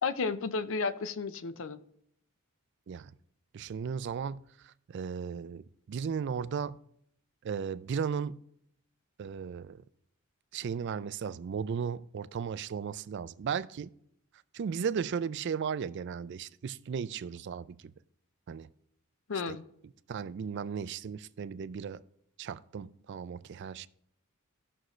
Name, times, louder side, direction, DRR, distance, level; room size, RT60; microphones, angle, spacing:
voice 1, 0.0-1.8 19.3-19.6, left 4 dB, 60° left, 0.5 m, -32 dB
voice 2, 3.5-6.8 7.4-8.4 9.2-9.8 10.5-13.9 14.5-17.9 18.5-18.7 19.5-19.6 20.1-22.0 22.4-23.9, right 6 dB, 50° right, 0.3 m, -36 dB
15.0 x 6.3 x 3.1 m
head